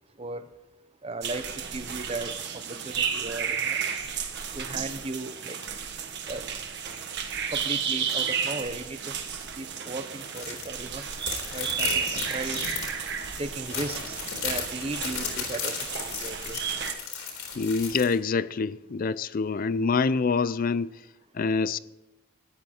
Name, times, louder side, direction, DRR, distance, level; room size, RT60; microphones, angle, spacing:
voice 1, 1.0-2.3 2.7-3.8 4.6-5.6 6.3-6.5 7.5-9.1 9.6-11.0 11.5-12.6 13.4-14.2 14.4-15.8 16.0-16.7, right 2 dB, 25° right, 0.7 m, -36 dB
sound 1, 1.2-16.9, right 7 dB, 50° right, 1.4 m, -32 dB
sound 2, 10.4-10.7 11.0-18.1, left 6 dB, 75° left, 3.8 m, -35 dB
voice 2, 17.5-20.9 21.3-21.8, left 4 dB, 40° left, 0.4 m, -26 dB
13.5 x 11.0 x 4.3 m
head